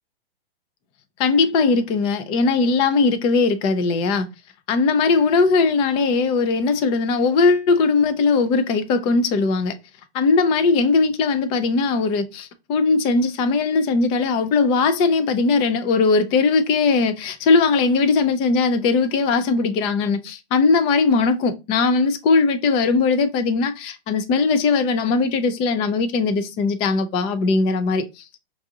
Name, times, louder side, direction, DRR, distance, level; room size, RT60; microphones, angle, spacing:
voice 1, 1.2-4.3 4.7-9.7 10.1-28.2, left 4 dB, 20° left, 0.4 m, -19 dB
5.8 x 2.5 x 2.7 m
hypercardioid pair, 140°, 30 cm